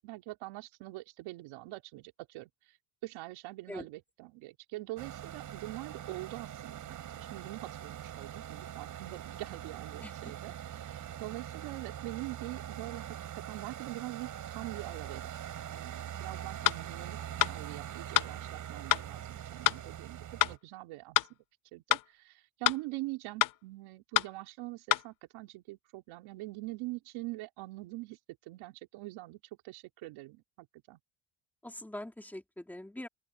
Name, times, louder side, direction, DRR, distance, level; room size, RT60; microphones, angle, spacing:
voice 1, 0.0-2.5 3.0-15.2 15.7-21.3 21.7-28.2 28.5-31.0, right 20 dB, 75° right, 3.1 m, -44 dB
sound 1, 5.0-20.6, right 10 dB, 40° right, 6.1 m, -43 dB
voice 2, 10.0-10.3 31.6-33.1, left 1 dB, 5° left, 2.6 m, -43 dB
sound 2, 16.6-16.8 17.4-17.5 18.1-18.3 18.9-19.1 19.6-19.8 20.4-20.6 21.1-21.3 21.9-22.1 22.6-22.8 23.4-23.5 24.1-24.3 24.9-25.0, left 14 dB, 40° left, 0.7 m, -27 dB
open air
cardioid pair, 175°, 49 cm